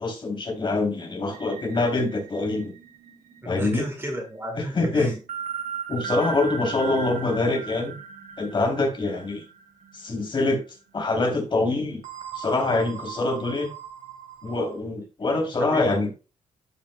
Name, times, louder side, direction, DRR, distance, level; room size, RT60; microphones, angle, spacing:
voice 1, 0.0-2.7 3.4-3.9 4.6-5.2 5.9-7.9 8.4-9.4 9.9-10.6 10.9-12.0 12.3-13.7 14.4-16.1, left 2 dB, 40° left, 3 dB, 3.0 m, -25 dB
sound 1, 1.3-10.2 10.6-10.8 12.0-14.8, right 6 dB, 85° right, 2.9 m, -38 dB
voice 2, 3.4-5.2 15.7-15.8, equal, 15° right, 1 dB, 1.9 m, -34 dB
13.0 x 5.8 x 2.2 m, 0.32 s
cardioid pair, 115°, 13 cm